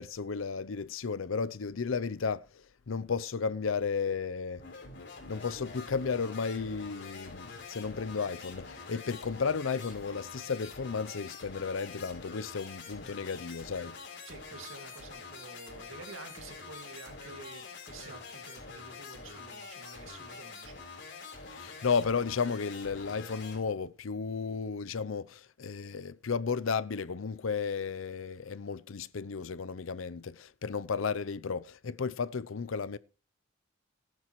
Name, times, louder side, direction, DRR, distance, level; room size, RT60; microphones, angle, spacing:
voice 1, 0.0-4.6 5.3-14.0 21.5-33.0, left 5 dB, 75° left, 0.6 m, -33 dB
sound 1, 4.6-23.6, left 4 dB, 60° left, 4.0 m, -46 dB
voice 2, 14.2-20.7, right 3 dB, 90° right, 2.2 m, -49 dB
18.0 x 10.5 x 3.1 m
head